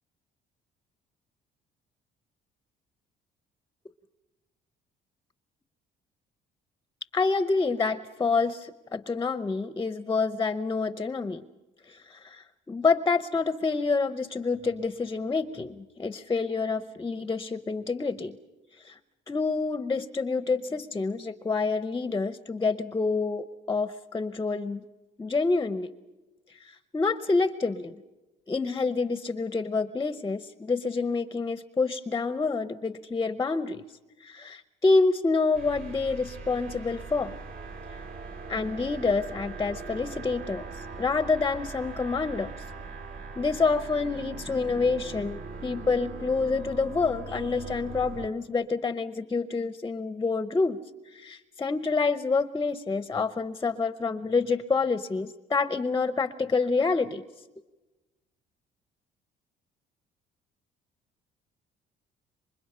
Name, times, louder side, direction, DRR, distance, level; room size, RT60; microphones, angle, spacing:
voice 1, 7.1-11.4 11.9-18.3 18.7-19.0 19.3-24.8 25.2-25.9 26.5-28.0 28.5-33.8 34.2-37.4 38.5-42.6 43.4-50.8 51.1-57.2, left 4 dB, 20° left, 12 dB, 0.7 m, -27 dB
sound 1, 35.5-48.3, right 4 dB, 55° right, 2.3 m, -40 dB
28.0 x 24.5 x 5.6 m, 1.1 s
cardioid pair, 110°, 17 cm